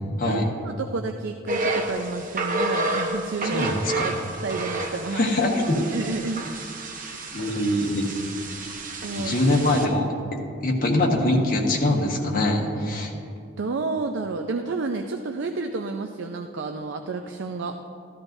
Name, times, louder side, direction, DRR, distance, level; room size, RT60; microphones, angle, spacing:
voice 1, 0.2-4.2 4.4-5.3 5.8-6.4 9.0-9.4 13.6-17.8, right 3 dB, 65° right, 4 dB, 0.5 m, -30 dB
sound 1, 1.5-9.9, right 2 dB, 45° right, 1.0 m, -30 dB
voice 2, 3.4-4.1 5.1-5.8 7.3-8.0 9.1-13.1, left 1 dB, 50° left, 0 dB, 1.4 m, -23 dB
14.0 x 12.5 x 2.6 m, 2.4 s
head